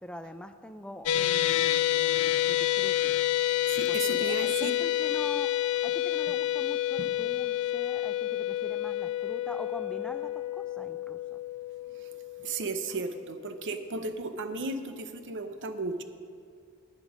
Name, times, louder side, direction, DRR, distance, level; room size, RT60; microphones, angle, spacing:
voice 1, 0.0-3.1 3.9-11.4, left 1 dB, 5° left, 9 dB, 0.4 m, -43 dB
sound 1, 1.1-13.4, left 13 dB, 70° left, 0.4 m, -29 dB
voice 2, 3.7-4.7 7.0-7.1 12.4-16.0, right 3 dB, 55° right, 9 dB, 0.7 m, -34 dB
10.5 x 9.1 x 5.1 m, 2.2 s
head